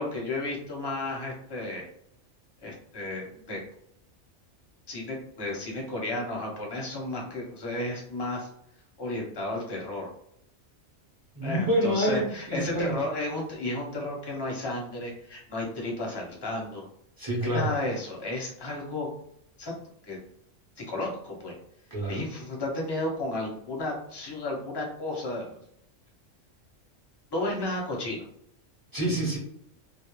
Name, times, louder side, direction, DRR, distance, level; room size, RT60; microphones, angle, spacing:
voice 1, 0.0-1.9 2.6-3.6 4.9-8.5 9.0-10.1 11.4-16.9 17.4-19.1 19.6-19.7 20.1-20.2 20.8-21.5 22.1-25.6 27.3-28.2, left 2 dB, 25° left, -1 dB, 0.6 m, -33 dB
voice 2, 11.3-12.9 17.2-17.7 21.9-22.2 28.9-29.4, right 1 dB, 20° right, -4 dB, 0.7 m, -27 dB
2.3 x 2.0 x 2.9 m, 0.70 s
omnidirectional pair, 1.3 m